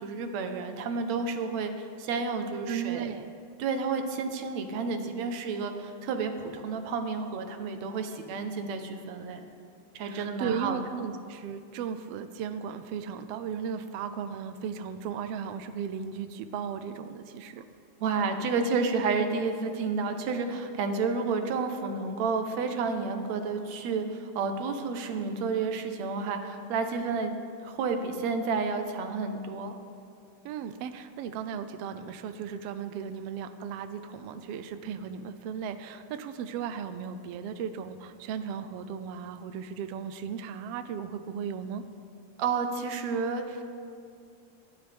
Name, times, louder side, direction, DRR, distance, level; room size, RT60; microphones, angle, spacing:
voice 1, 0.0-3.1 3.6-9.5 9.9-10.8 18.0-27.3 27.6-29.7 42.4-43.6, right 4 dB, 70° right, 6 dB, 2.1 m, -30 dB
voice 2, 2.7-3.3 10.0-17.7 30.4-41.8, right 7 dB, 85° right, 9 dB, 1.3 m, -36 dB
26.5 x 12.0 x 3.5 m, 2.4 s
omnidirectional pair, 3.5 m